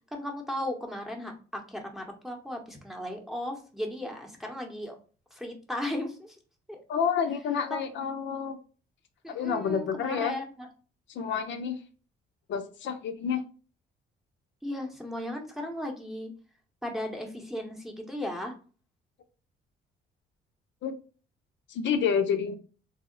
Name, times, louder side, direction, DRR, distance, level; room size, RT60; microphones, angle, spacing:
voice 1, 0.1-4.9 5.3-6.4 6.7-6.8 7.7-7.8 9.2-10.7 14.6-16.3 16.8-18.5, left 1 dB, ahead, 1 dB, 0.8 m, -36 dB
voice 2, 6.9-8.6 9.3-10.3 11.1-11.8 12.5-13.4 20.8-20.9 21.7-22.5, left 7 dB, 70° left, 6 dB, 0.5 m, -29 dB
2.7 x 2.0 x 3.7 m, 0.38 s
cardioid pair, 90°, 20 cm